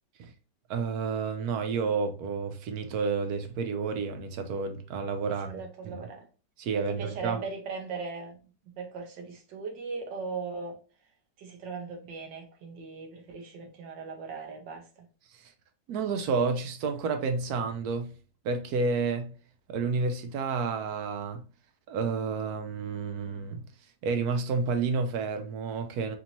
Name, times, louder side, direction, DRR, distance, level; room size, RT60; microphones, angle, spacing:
voice 1, 0.7-5.5 5.8-6.1 6.6-7.4 15.3-15.5 15.9-18.1 18.4-19.3 19.7-21.4 21.9-23.6 24.0-26.2, right 4 dB, 70° right, 1.0 m, -30 dB
voice 2, 5.3-6.3 6.7-8.4 8.8-10.8 11.4-15.1, right 4 dB, 90° right, 1.6 m, -39 dB
4.3 x 2.7 x 2.9 m
omnidirectional pair, 1.9 m